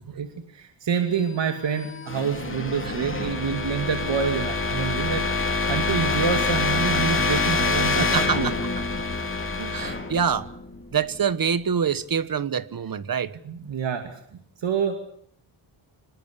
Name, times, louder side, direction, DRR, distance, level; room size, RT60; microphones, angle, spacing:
voice 1, 0.2-8.6 9.6-9.7 13.4-14.1 14.6-15.0, right 6 dB, 65° right, 2.7 m, -27 dB
sound 1, 1.4-11.2, left 3 dB, 25° left, 3.0 m, -26 dB
voice 2, 8.0-8.4 9.7-10.5 10.9-13.4, right 7 dB, 45° right, 1.3 m, -25 dB
26.0 x 21.5 x 8.3 m
wide cardioid pair, 150°, 48 cm